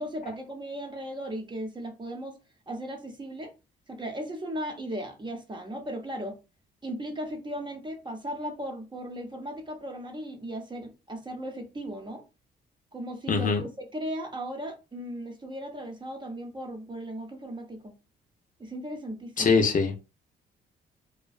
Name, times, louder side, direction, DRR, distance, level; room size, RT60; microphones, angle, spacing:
voice 1, 0.0-2.4 2.7-3.5 3.9-6.4 6.8-12.2 12.9-17.9 18.6-19.6, equal, 25° right, 0.7 m, -37 dB
voice 2, 13.3-13.6 19.4-20.1, left 4 dB, 40° left, 0.6 m, -23 dB
2.4 x 2.2 x 2.4 m
cardioid pair, 90°, 20 cm